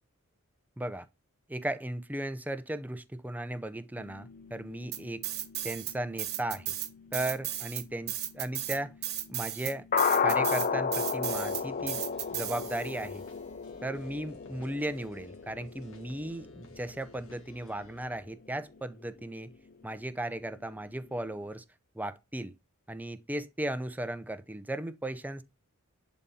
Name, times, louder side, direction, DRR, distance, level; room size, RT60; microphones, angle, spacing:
voice 1, 1.5-5.2 5.6-6.7 7.1-8.9 9.3-9.9 10.2-12.0 12.3-13.2 13.8-19.5 19.8-21.6 21.9-22.5 22.9-25.4, right 1 dB, 10° right, 0.6 m, -36 dB
sound 1, 4.0-18.8 19.1-19.2 19.5-19.6 20.0-20.1 20.5-20.6 20.7-20.8, left 6 dB, 40° left, 0.6 m, -35 dB
sound 2, 4.9-5.9 6.2-13.0, right 12 dB, 50° right, 1.1 m, -35 dB
sound 3, 11.3-18.2, left 1 dB, 65° left, 2.1 m, -58 dB
11.0 x 4.1 x 5.6 m
head